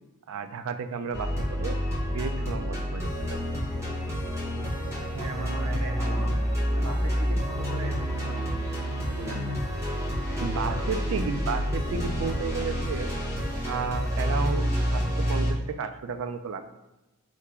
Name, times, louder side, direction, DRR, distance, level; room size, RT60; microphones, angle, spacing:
voice 1, 0.3-1.8 2.1-3.4 10.4-13.1 13.6-16.8, right 5 dB, 65° right, 9 dB, 0.4 m, -33 dB
sound 1, 1.1-15.5, equal, 15° right, 1.2 m, -28 dB
voice 2, 5.1-6.4 6.8-8.6 9.0-9.6 10.7-11.1, right 2 dB, 90° right, 1 dB, 0.8 m, -39 dB
4.4 x 2.9 x 3.6 m, 1.1 s
head